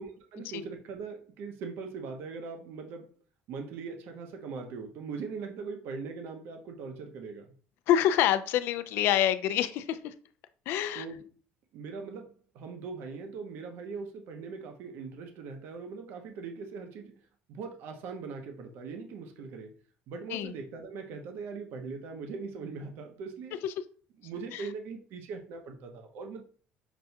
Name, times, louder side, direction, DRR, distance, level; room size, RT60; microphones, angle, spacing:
voice 1, 0.0-3.1 3.5-7.5 10.9-11.2 11.7-17.1 17.5-19.7 20.1-23.6 24.2-26.4, right 4 dB, 60° right, 0.7 m, -40 dB
voice 2, 7.9-10.1 10.7-11.0 20.3-20.5 23.6-23.7 24.5-24.6, left 11 dB, 60° left, 0.3 m, -26 dB
6.0 x 2.2 x 2.7 m
cardioid pair, 155°, 4 cm